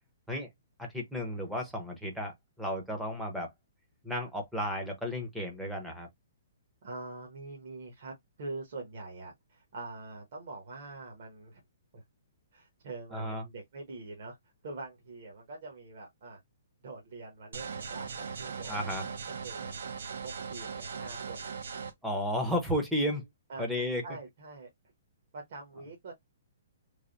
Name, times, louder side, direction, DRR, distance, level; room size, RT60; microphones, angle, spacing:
voice 1, 0.8-3.5 4.0-6.1 13.1-13.4 18.7-19.1 22.0-23.3 23.6-24.0, equal, ahead, 0.7 m, -33 dB
voice 2, 6.8-11.6 11.9-12.0 12.5-14.4 14.6-16.4 16.8-19.1 19.4-19.7 20.2-21.5 23.5-24.7 25.3-26.1, right 3 dB, 40° right, 1.0 m, -44 dB
sound 1, 17.5-21.9, right 5 dB, 65° right, 0.7 m, -39 dB
3.3 x 2.1 x 3.9 m
hypercardioid pair, 175°, 0 cm